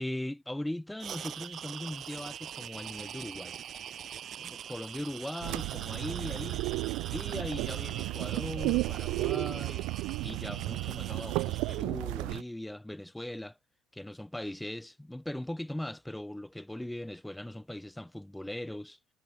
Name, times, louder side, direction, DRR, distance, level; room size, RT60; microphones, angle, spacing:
voice 1, 0.0-3.6 4.4-6.6 7.1-9.9 10.2-13.6 13.9-19.0, left 1 dB, 5° left, 2.9 m, -39 dB
sound 1, 1.0-11.8, right 9 dB, 45° right, 1.9 m, -43 dB
sound 2, 5.4-12.4, right 22 dB, 80° right, 0.3 m, -33 dB
cardioid pair, 130°, 0 cm